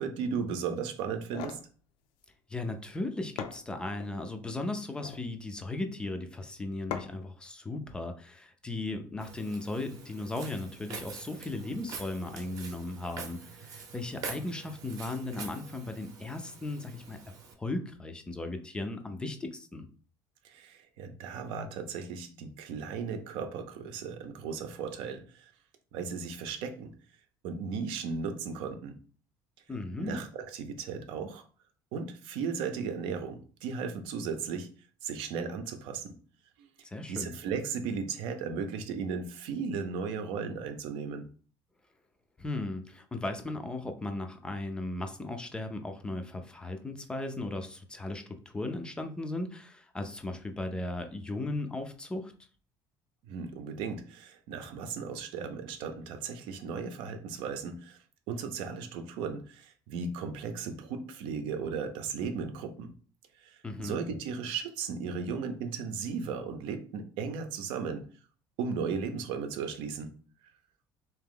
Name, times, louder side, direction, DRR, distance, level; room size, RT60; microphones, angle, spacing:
voice 1, 0.0-1.6 20.4-25.5 25.9-26.9 27.4-29.0 30.0-31.4 31.9-34.7 35.0-36.2 36.6-36.7 37.1-41.3 53.2-58.0 58.3-62.9 63.4-68.1 68.6-70.1, right 5 dB, 80° right, 7 dB, 0.7 m, -36 dB
sound 1, 1.1-1.7 2.9-3.0 3.4-4.2 4.8-5.3 6.9-7.3, left 9 dB, 75° left, 0.5 m, -40 dB
voice 2, 2.5-17.2 17.6-19.9 29.7-30.2 36.8-37.4 42.4-52.3 63.6-64.0, left 2 dB, 10° left, 6 dB, 0.4 m, -36 dB
Walk footsteps, 9.2-17.5, right 5 dB, 40° right, 0.7 m, -45 dB
3.6 x 2.9 x 3.7 m, 0.40 s
cardioid pair, 175°, 9 cm